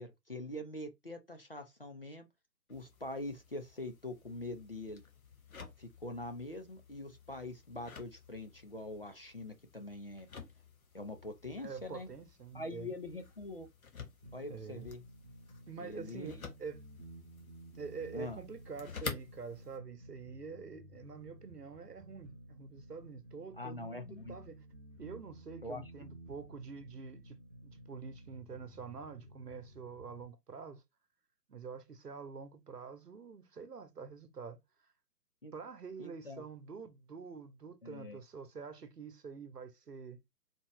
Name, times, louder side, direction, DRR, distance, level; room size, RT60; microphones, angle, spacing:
voice 1, 0.0-2.3 2.7-5.0 5.8-10.3 10.9-12.1 12.5-13.7 14.3-15.0 15.8-16.4 18.1-18.4 23.6-24.4 25.6-25.9 35.4-35.5 36.0-36.4 37.8-38.2, left 2 dB, 35° left, 0.5 m, -44 dB
sound 1, 2.7-19.8, left 5 dB, 55° left, 1.3 m, -51 dB
voice 2, 11.6-13.0 14.5-14.9 15.7-16.8 17.8-24.7 25.0-30.8 31.5-34.6 35.5-40.2, right 5 dB, 70° right, 1.1 m, -47 dB
sound 2, 14.2-30.2, right 1 dB, 20° right, 0.6 m, -54 dB
4.3 x 2.9 x 3.1 m
figure-of-eight pair, 145°, 50 cm